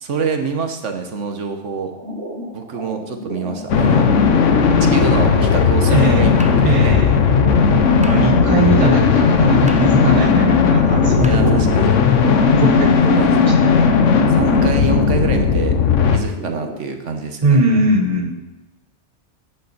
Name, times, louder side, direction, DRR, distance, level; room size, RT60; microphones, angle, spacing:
voice 1, 0.0-1.9 2.5-4.1 4.8-6.9 11.2-11.9 13.1-13.5 14.3-15.7 16.1-17.6, right 5 dB, 80° right, 6 dB, 1.4 m, -26 dB
sound 1, 1.9-16.8, right 1 dB, 65° right, 1.9 m, -35 dB
sound 2, 3.7-16.2, left 5 dB, 90° left, 1.2 m, -15 dB
Musical instrument, 4.9-12.0, right 2 dB, 10° right, 0.3 m, -30 dB
voice 2, 5.9-6.3 6.6-7.2 8.0-11.7 12.5-14.3 17.4-18.3, right 2 dB, 30° right, 3 dB, 1.3 m, -20 dB
11.0 x 8.9 x 4.2 m, 1.0 s
omnidirectional pair, 1.2 m